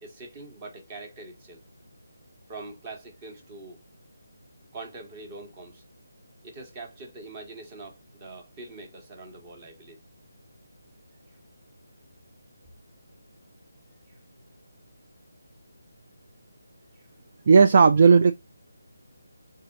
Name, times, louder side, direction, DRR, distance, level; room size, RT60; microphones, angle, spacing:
voice 1, 0.0-1.6 2.5-3.8 4.7-5.8 6.4-10.0 14.1-14.2 16.9-17.1, right 3 dB, 25° right, 1.2 m, -43 dB
voice 2, 17.5-18.3, right 5 dB, 40° right, 0.3 m, -15 dB
4.0 x 3.8 x 2.4 m
figure-of-eight pair, 155°, 0 cm